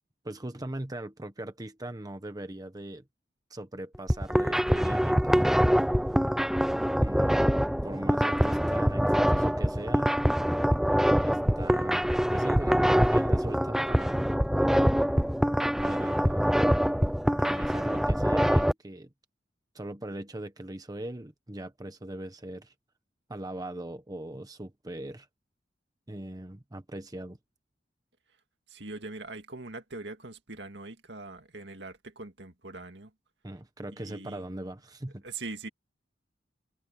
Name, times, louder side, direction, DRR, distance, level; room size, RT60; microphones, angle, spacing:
voice 1, 0.2-3.0 3.5-5.5 7.0-7.5 7.8-10.1 11.1-14.2 15.8-16.8 17.3-19.1 19.7-22.7 23.3-25.3 26.1-27.4 33.4-35.2, right 1 dB, 20° right, 1.1 m, -40 dB
sound 1, 3.9-18.7, equal, ahead, 0.6 m, -24 dB
voice 2, 28.7-33.1 34.0-34.4 35.2-35.7, right 3 dB, 65° right, 2.3 m, -42 dB
head